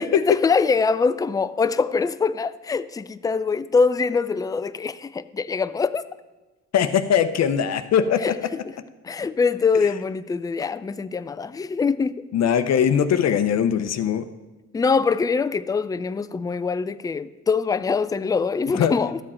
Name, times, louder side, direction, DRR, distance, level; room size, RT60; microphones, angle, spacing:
voice 1, 0.0-6.0 8.2-8.4 9.0-12.2 14.7-19.2, left 5 dB, 15° left, 0.3 m, -23 dB
voice 2, 6.7-8.4 12.3-14.3 18.8-18.9, left 8 dB, 60° left, 0.6 m, -21 dB
12.5 x 7.6 x 4.3 m
cardioid pair, 90°, 30 cm